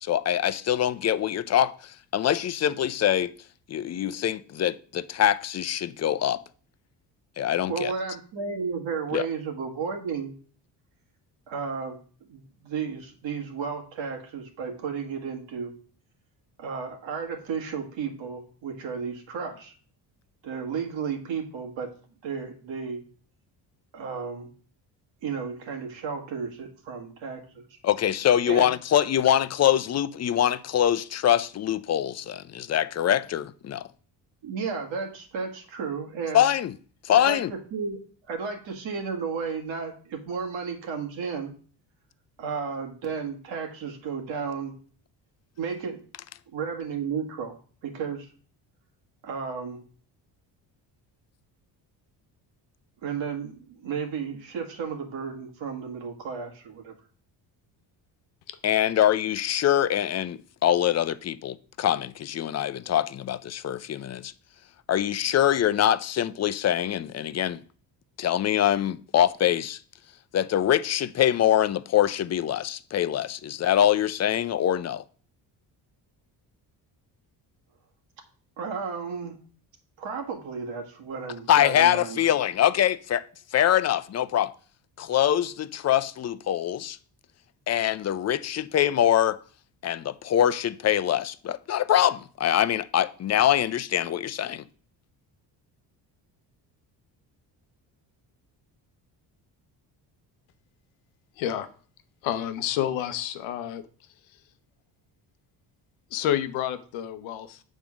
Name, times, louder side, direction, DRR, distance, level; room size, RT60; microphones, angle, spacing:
voice 1, 0.0-3.3 3.7-6.4 7.4-7.9 9.1-9.3 27.8-33.9 36.3-36.8 37.0-37.5 58.6-64.3 64.9-67.6 68.2-69.8 70.3-75.0 81.5-83.2 83.5-84.5 85.0-87.0 87.7-89.4 89.8-94.6, left 11 dB, 35° left, 0.5 m, -24 dB
voice 2, 7.7-10.3 11.5-12.0 12.3-15.7 16.6-19.7 20.4-21.9 22.2-23.0 23.9-24.5 25.2-27.8 28.4-28.6 34.4-36.4 37.1-38.0 38.3-41.5 42.4-44.8 45.6-46.0 46.5-47.6 47.8-48.3 49.2-49.8 53.0-56.9 78.6-79.4 80.0-82.2, right 5 dB, 75° right, 1.8 m, -33 dB
voice 3, 101.4-101.7 102.2-103.8 106.1-107.6, left 11 dB, 90° left, 0.8 m, -29 dB
7.1 x 3.7 x 6.0 m
supercardioid pair, 70°, 46 cm